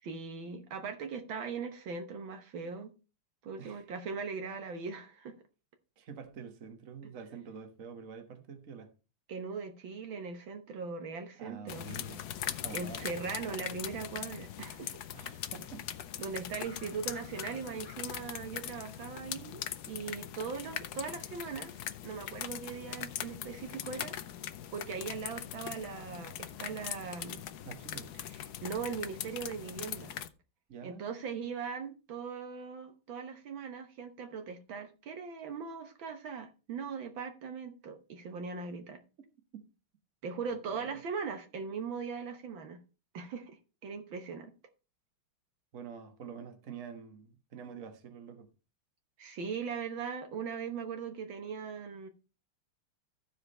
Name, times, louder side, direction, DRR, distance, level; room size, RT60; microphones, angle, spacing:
voice 1, 0.0-2.9 3.4-5.3 9.3-11.9 12.7-15.0 16.2-24.2 24.7-27.4 28.3-30.2 30.8-39.0 40.2-42.8 43.1-44.5 49.2-52.1, right 5 dB, 65° right, 1.8 m, -40 dB
voice 2, 6.0-8.9 11.4-12.2 12.6-13.1 15.1-16.2 27.6-28.1 30.7-31.0 40.7-41.0 45.7-48.5, right 6 dB, 40° right, 1.6 m, -47 dB
sound 1, 11.7-30.3, left 11 dB, 65° left, 1.0 m, -41 dB
14.5 x 5.0 x 4.2 m
omnidirectional pair, 2.3 m